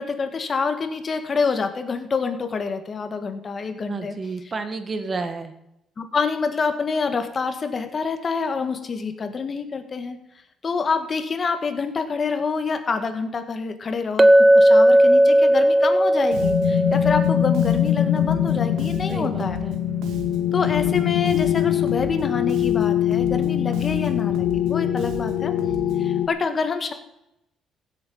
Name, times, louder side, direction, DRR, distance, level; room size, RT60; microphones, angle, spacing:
voice 1, 0.0-4.1 6.0-10.2 10.6-14.3 14.5-19.6 20.5-25.5 26.0-26.9, left 5 dB, 35° left, 8 dB, 1.7 m, -27 dB
voice 2, 3.9-5.5 19.1-19.7, right 3 dB, 30° right, 9 dB, 1.6 m, -31 dB
Chink clink, 14.2-18.4, right 1 dB, 15° right, 0.6 m, -17 dB
Bass guitar, 16.3-26.2, right 7 dB, 90° right, 1.8 m, -38 dB
sound 1, 16.4-26.3, left 12 dB, 85° left, 0.7 m, -23 dB
16.0 x 8.6 x 5.5 m, 0.84 s
cardioid pair, 125°, 0 cm